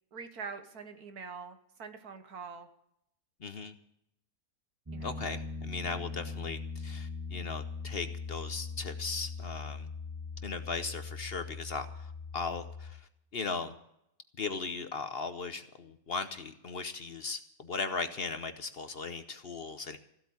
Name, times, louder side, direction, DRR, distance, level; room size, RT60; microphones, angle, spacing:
voice 1, 0.1-2.7 4.9-5.1, right 5 dB, 80° right, 8 dB, 1.9 m, -44 dB
voice 2, 3.4-3.7 5.0-9.9 10.4-13.8 14.4-20.0, left 4 dB, 45° left, 10 dB, 0.9 m, -38 dB
Piano, 4.9-12.9, left 4 dB, 15° right, 0.8 m, -40 dB
15.0 x 8.4 x 9.5 m, 0.76 s
omnidirectional pair, 1.6 m